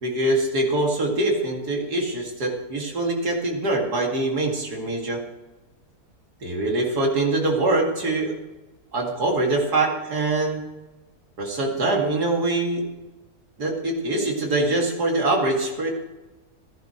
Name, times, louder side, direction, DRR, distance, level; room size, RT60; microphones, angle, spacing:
voice 1, 0.0-5.2 6.4-8.3 8.9-10.6 11.4-12.9 13.6-15.9, right 2 dB, 75° right, 0 dB, 2.8 m, -23 dB
15.0 x 11.0 x 4.5 m, 1.1 s
omnidirectional pair, 1.7 m